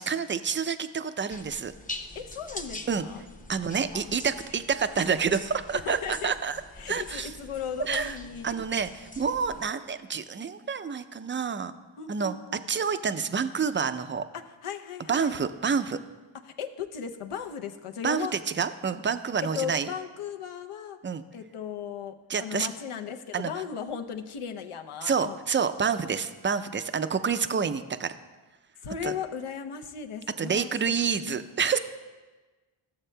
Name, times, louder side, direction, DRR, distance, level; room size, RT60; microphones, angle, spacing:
voice 1, 0.0-1.7 2.9-3.1 3.5-6.6 6.9-7.3 7.9-8.2 8.4-8.9 9.2-11.7 12.1-12.3 12.7-14.2 15.1-16.0 18.0-18.3 18.6-19.9 21.0-21.2 22.3-22.7 23.3-23.5 25.0-28.1 29.0-29.1 30.4-31.8, right 6 dB, 25° right, 12 dB, 0.4 m, -28 dB
sound 1, 1.3-9.7, left 2 dB, 15° left, 0.6 m, -43 dB
voice 2, 2.1-3.2 5.8-6.3 6.8-8.6 12.0-12.6 14.3-15.4 16.4-18.3 19.4-21.0 21.3-25.4 28.8-31.2, left 7 dB, 80° left, 5 dB, 0.7 m, -36 dB
14.0 x 7.3 x 2.2 m, 1.2 s
wide cardioid pair, 60°, 50 cm